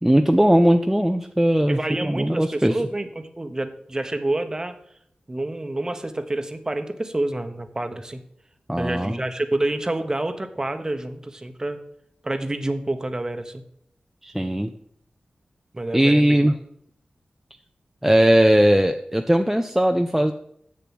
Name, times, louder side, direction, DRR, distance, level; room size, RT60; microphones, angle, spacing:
voice 1, 0.0-2.7 8.7-9.2 14.2-14.7 15.9-16.5 18.0-20.3, equal, 5° right, 5 dB, 0.5 m, -19 dB
voice 2, 1.7-4.8 5.3-8.2 8.8-11.8 12.2-13.6 15.7-16.4, right 2 dB, 25° right, 9 dB, 0.9 m, -28 dB
7.6 x 6.8 x 6.1 m, 0.70 s
wide cardioid pair, 90°, 3 cm